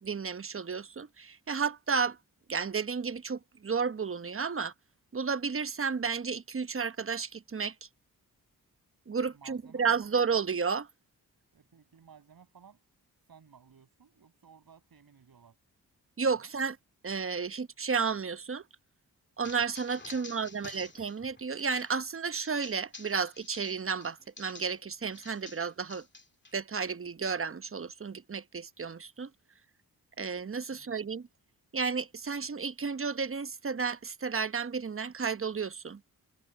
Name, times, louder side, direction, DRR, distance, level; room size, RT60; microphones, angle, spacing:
voice 1, 0.0-2.2 2.5-4.7 5.1-7.7 9.1-10.9 16.2-16.8 17.0-18.6 19.4-26.0 26.5-29.3 30.2-31.3 31.7-36.0, right 5 dB, 35° right, 1.0 m, -32 dB
voice 2, 9.3-10.1 11.5-12.8 13.2-15.6 16.4-16.5 20.0-20.8 30.7-31.1, right 7 dB, 70° right, 7.9 m, -57 dB
sound 1, 19.4-24.8 25.1-26.5, left 3 dB, 30° left, 2.6 m, -50 dB
supercardioid pair, 45°, 37 cm